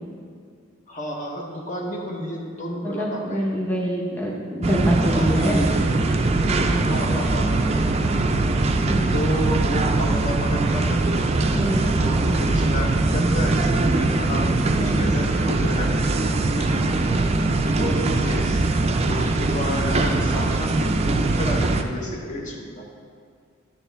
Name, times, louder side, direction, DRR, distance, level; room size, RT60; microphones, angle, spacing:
voice 1, 0.9-3.5 5.1-6.2 6.8-7.5 9.1-11.3 11.8-14.5 14.8-16.0 16.5-16.7 17.6-18.7 19.0-22.8, equal, 40° left, 0 dB, 1.0 m, -31 dB
voice 2, 2.8-5.7 6.4-6.8 8.8-9.2 11.6-11.9 14.7-15.1 17.8-17.9, right 1 dB, 10° left, -4 dB, 0.8 m, -25 dB
sound 1, 4.6-21.8, right 2 dB, 30° right, 0.4 m, -21 dB
10.0 x 6.8 x 3.4 m, 2.1 s
head